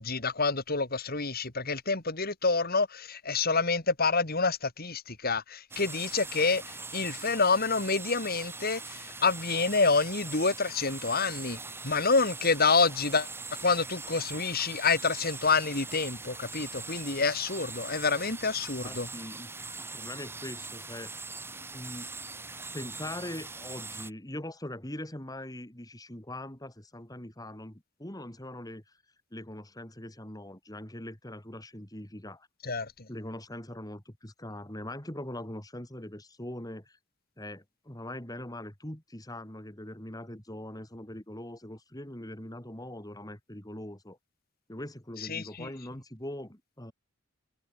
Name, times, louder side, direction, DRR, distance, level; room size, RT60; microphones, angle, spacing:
voice 1, 0.0-6.6 6.9-11.6 11.8-13.3 13.6-19.1 32.6-32.9 45.3-45.7, left 4 dB, 45° left, 3.1 m, -27 dB
sound 1, 5.7-24.1, right 3 dB, 10° right, 2.4 m, -42 dB
voice 2, 18.8-19.5 19.8-21.2 21.7-22.1 22.7-29.0 29.3-32.5 33.1-37.0 37.4-44.2 44.7-46.9, left 1 dB, 20° left, 3.2 m, -42 dB
head